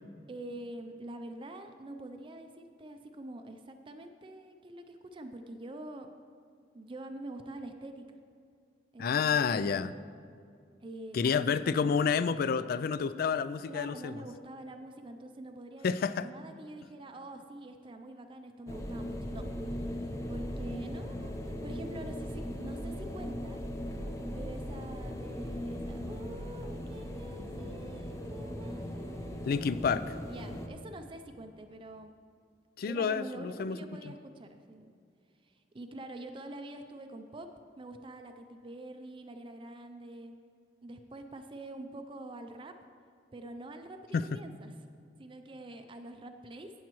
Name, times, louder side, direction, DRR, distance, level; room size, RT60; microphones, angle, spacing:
voice 1, 0.3-6.1 6.7-8.0 8.9-9.9 10.8-11.8 13.7-15.9 16.2-19.4 20.3-23.6 24.3-29.4 30.0-32.1 32.8-34.9 35.4-37.5 37.8-40.4 40.8-42.7 43.3-44.7 45.2-46.7, right 1 dB, 30° right, 6 dB, 0.4 m, -46 dB
voice 2, 9.0-9.9 11.1-14.2 15.8-16.3 29.4-30.0 32.8-33.8 34.1-34.2 44.1-44.2, left 6 dB, 55° left, 14 dB, 0.3 m, -29 dB
sound 1, 18.7-30.7, equal, 15° left, 0.7 m, -38 dB
16.0 x 7.1 x 3.0 m, 2.4 s
head